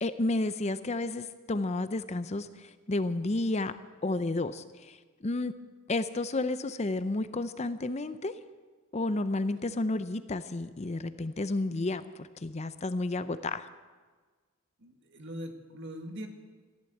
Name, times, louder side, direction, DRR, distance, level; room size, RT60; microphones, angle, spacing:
voice 1, 0.0-3.7 4.0-5.5 5.9-8.4 8.9-13.7, left 2 dB, 30° left, 12 dB, 0.5 m, -31 dB
voice 2, 14.8-16.3, equal, 55° right, 5 dB, 1.9 m, -41 dB
14.5 x 11.5 x 8.4 m, 1.4 s
head